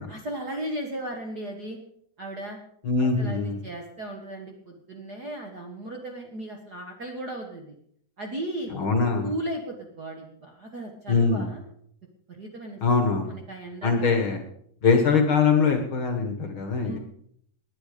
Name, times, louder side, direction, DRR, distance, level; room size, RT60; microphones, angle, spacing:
voice 1, 0.1-1.8 2.2-2.6 3.0-7.7 8.2-8.7 9.2-11.6 12.3-12.8 13.1-14.2 16.8-17.0, right 1 dB, 40° right, 2 dB, 1.5 m, -36 dB
voice 2, 2.8-3.6 8.7-9.3 11.1-11.5 12.8-13.3 13.8-14.4 14.8-17.0, left 5 dB, 50° left, 5 dB, 1.9 m, -22 dB
19.0 x 10.5 x 5.1 m, 0.68 s
omnidirectional pair, 3.6 m